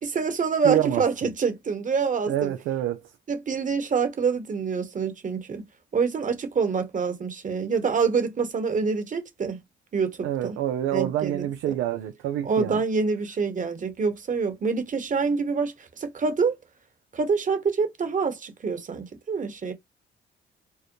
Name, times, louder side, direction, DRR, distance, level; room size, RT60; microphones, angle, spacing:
voice 1, 0.0-2.5 3.3-5.6 5.9-9.6 9.9-10.6 10.9-11.5 12.4-16.5 17.1-19.7, right 5 dB, 40° right, 1.2 m, -26 dB
voice 2, 0.6-1.0 2.3-3.0 10.2-12.8, right 12 dB, 90° right, 0.6 m, -27 dB
4.7 x 2.1 x 3.1 m
cardioid pair, 90°, 20 cm